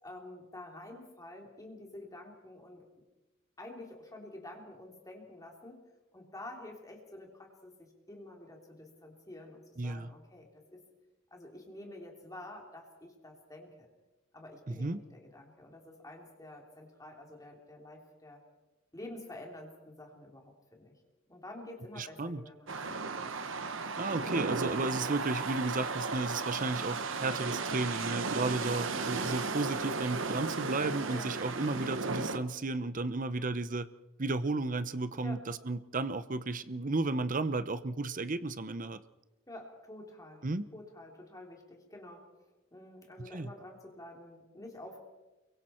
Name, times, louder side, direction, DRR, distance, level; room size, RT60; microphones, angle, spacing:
voice 1, 0.0-2.9 3.6-5.8 6.1-10.8 11.3-13.9 14.3-18.4 18.9-21.0 21.3-23.0 31.1-31.3 35.2-35.4 39.5-40.4 40.7-42.3 42.7-45.0, left 1 dB, 15° left, 1 dB, 3.3 m, -49 dB
voice 2, 9.8-10.1 14.7-15.0 22.0-22.4 24.0-33.9 34.2-39.0 40.4-40.7 43.2-43.5, right 3 dB, 40° right, 13 dB, 0.8 m, -33 dB
sound 1, 22.7-32.4, right 4 dB, 65° right, 1.2 m, -35 dB
29.0 x 23.5 x 4.5 m, 1.1 s
head